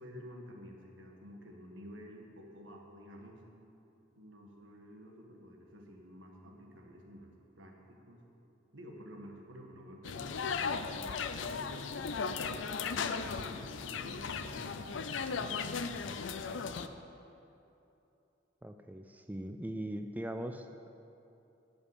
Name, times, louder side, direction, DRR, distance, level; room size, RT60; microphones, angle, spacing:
voice 1, 0.0-3.5 4.1-8.2 8.7-11.7 12.8-14.8 15.3-16.7, equal, 80° right, 1 dB, 1.6 m, -51 dB
sound 1, 10.0-16.9, left 5 dB, 75° left, 0.5 m, -36 dB
voice 2, 18.6-20.7, right 1 dB, 10° right, 6 dB, 0.4 m, -40 dB
12.0 x 5.2 x 8.4 m, 2.8 s
head